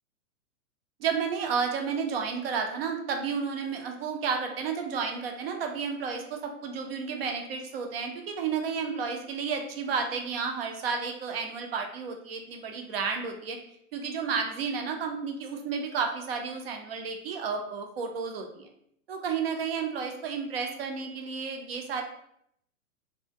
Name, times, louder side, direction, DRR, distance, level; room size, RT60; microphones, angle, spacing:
voice 1, 1.0-13.6 13.9-18.7 19.1-22.0, right 5 dB, 45° right, 3 dB, 0.4 m, -32 dB
2.5 x 2.1 x 2.4 m, 0.73 s
hypercardioid pair, 125°, 42 cm